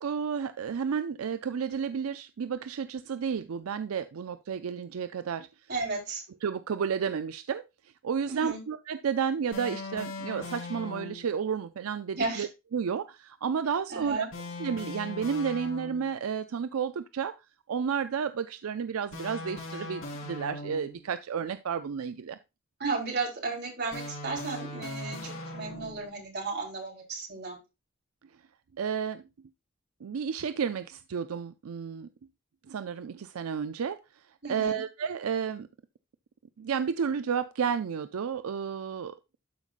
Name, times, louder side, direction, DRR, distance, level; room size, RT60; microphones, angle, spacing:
voice 1, 0.0-5.5 6.4-7.6 8.0-14.3 14.6-17.3 17.7-22.4 28.8-29.2 30.0-32.1 32.7-34.2 34.5-35.7 36.6-39.1, right 6 dB, 85° right, 12 dB, 0.4 m, -31 dB
voice 2, 5.7-6.2 8.3-8.6 12.2-12.5 13.9-14.3 22.8-27.6 34.4-34.8, right 3 dB, 50° right, -1 dB, 3.7 m, -34 dB
sound 1, 9.5-11.3 14.3-16.2 19.1-21.1 23.9-26.1, left 2 dB, 75° left, 4.0 m, -39 dB
12.0 x 5.3 x 2.5 m, 0.25 s
head